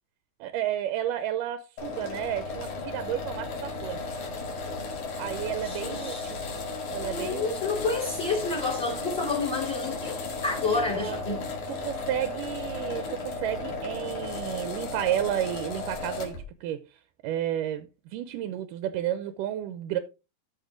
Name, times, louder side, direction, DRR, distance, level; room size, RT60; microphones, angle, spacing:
voice 1, 0.4-4.0 5.2-6.4 6.9-7.6 10.6-11.4 11.7-16.8 17.2-20.0, right 11 dB, 75° right, 2.2 m, -32 dB
sound 1, 1.8-16.4, left 3 dB, 60° left, 3.4 m, -35 dB
voice 2, 5.6-11.4, left 3 dB, 30° left, 4.0 m, -30 dB
13.5 x 5.4 x 3.8 m
omnidirectional pair, 4.1 m